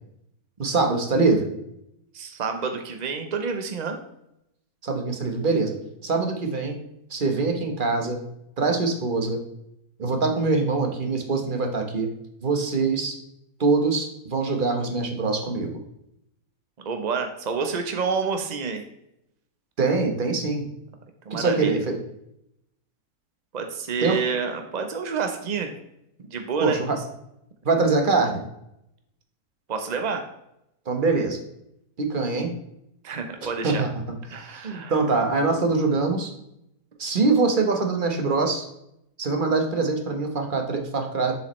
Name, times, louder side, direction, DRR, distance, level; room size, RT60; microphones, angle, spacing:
voice 1, 0.6-1.5 4.8-5.8 6.0-6.8 7.1-8.2 8.6-9.4 10.0-12.1 12.4-13.1 13.6-15.8 19.8-20.6 21.3-21.9 24.0-24.2 26.6-27.0 27.6-28.4 30.9-31.4 32.0-32.5 33.4-33.9 34.3-36.3 37.0-38.6 39.2-41.3, right 3 dB, 35° right, 4 dB, 1.0 m, -23 dB
voice 2, 2.1-4.0 16.8-18.8 21.3-21.7 23.5-25.7 26.2-26.8 29.7-30.2 33.0-33.8 34.3-34.9, right 5 dB, 60° right, 5 dB, 0.4 m, -28 dB
7.2 x 7.1 x 3.1 m, 0.80 s
omnidirectional pair, 1.8 m